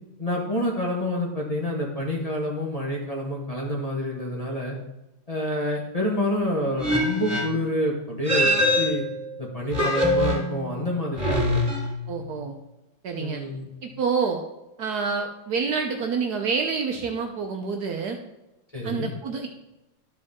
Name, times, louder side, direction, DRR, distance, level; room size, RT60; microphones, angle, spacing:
voice 1, 0.2-4.8 5.3-9.0 9.4-11.6 13.2-13.7 18.7-19.1, left 1 dB, 20° left, -3 dB, 1.2 m, -28 dB
sound 1, 6.8-7.7 8.3-9.3 9.7-10.7 11.2-12.2, left 1 dB, 15° right, 2.6 m, -24 dB
voice 2, 12.1-12.6 13.0-13.4 13.8-14.4 14.8-18.2 18.8-19.5, right 5 dB, 65° right, 3 dB, 1.1 m, -27 dB
13.0 x 4.9 x 3.6 m, 0.97 s
omnidirectional pair, 2.1 m